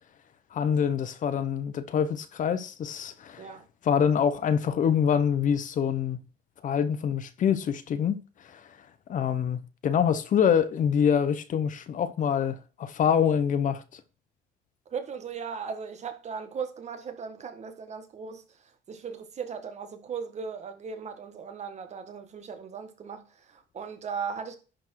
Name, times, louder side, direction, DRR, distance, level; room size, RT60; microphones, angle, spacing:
voice 1, 0.5-3.5 3.8-6.2 6.6-8.2 8.5-8.6 9.1-14.0, left 8 dB, 50° left, 0.9 m, -25 dB
voice 2, 14.9-24.6, right 6 dB, 40° right, 1.6 m, -37 dB
11.0 x 4.4 x 4.7 m
cardioid pair, 110°, 17 cm